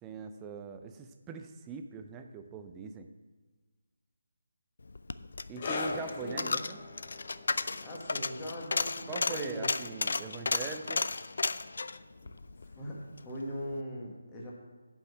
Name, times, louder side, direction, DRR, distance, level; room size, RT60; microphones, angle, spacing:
voice 1, 0.0-3.1 5.5-6.8 9.1-11.1, right 6 dB, 15° right, 6 dB, 0.5 m, -42 dB
Coin (dropping), 4.9-13.3 13.6-13.7, left 3 dB, 60° left, 0.4 m, -34 dB
sound 1, 5.6-12.6 12.8-13.0 13.8-13.9, left 3 dB, 35° left, 0.8 m, -42 dB
voice 2, 6.2-6.5 7.8-10.0 12.2-12.3 12.7-12.9 13.2-14.5, equal, 10° left, -5 dB, 1.5 m, -40 dB
7.5 x 5.5 x 7.2 m, 1.4 s
figure-of-eight pair, 160°, 0 cm